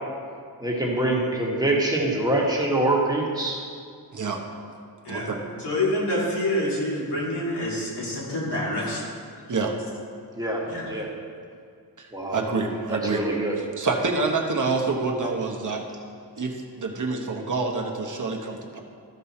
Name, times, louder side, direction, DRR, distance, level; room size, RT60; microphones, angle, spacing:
voice 1, 0.6-3.6 10.3-10.6 10.9-11.1 12.1-12.4 12.9-13.6, right 2 dB, 10° right, -3 dB, 1.5 m, -24 dB
voice 2, 4.1-4.4 5.1-5.4 9.5-9.7 12.0-13.2 13.8-15.8 16.4-18.8, right 4 dB, 50° right, 1 dB, 1.1 m, -27 dB
voice 3, 5.6-9.1 10.6-10.9, left 1 dB, 85° left, -5 dB, 2.5 m, -27 dB
13.5 x 5.4 x 4.3 m, 2.3 s
wide cardioid pair, 105°, 40 cm